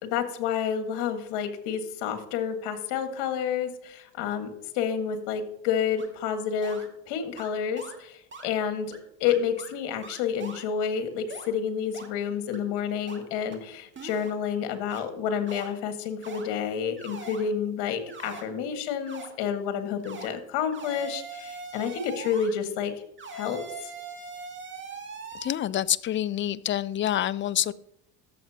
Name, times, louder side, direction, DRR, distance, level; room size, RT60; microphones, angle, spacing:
voice 1, 0.0-22.9 23.3-23.9, left 7 dB, 70° left, 8 dB, 1.7 m, -29 dB
sound 1, 6.0-6.1 6.6-6.9 7.4-7.5 7.8-8.0 8.3-8.5 8.9-9.0 9.3-9.7 10.0-10.6 11.3-11.5 11.9-12.1 12.5-12.6 13.1-13.2 13.5-13.6 14.0-14.3 14.9-15.0 15.5-15.7 16.2-16.5 17.0-17.4 18.1-18.4 19.1-19.3 20.0-20.3 20.7-22.5 23.2-25.5, right 4 dB, 25° right, 1.9 m, -41 dB
voice 2, 25.4-27.7, left 11 dB, 30° left, 19 dB, 0.4 m, -27 dB
12.5 x 7.4 x 2.8 m, 0.78 s
supercardioid pair, 80°, 43 cm